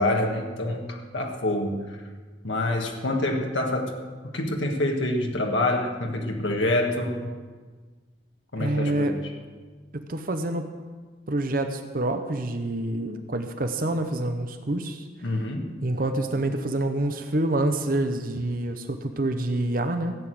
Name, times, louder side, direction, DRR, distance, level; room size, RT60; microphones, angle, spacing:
voice 1, 0.0-2.0 2.4-3.9 4.2-7.3 8.5-9.2 15.2-15.7, left 1 dB, 85° left, 2 dB, 1.6 m, -26 dB
voice 2, 8.6-9.1 9.9-10.7 11.3-15.3 15.8-20.2, right 1 dB, 50° right, 7 dB, 0.8 m, -27 dB
16.0 x 8.3 x 7.7 m, 1.4 s
head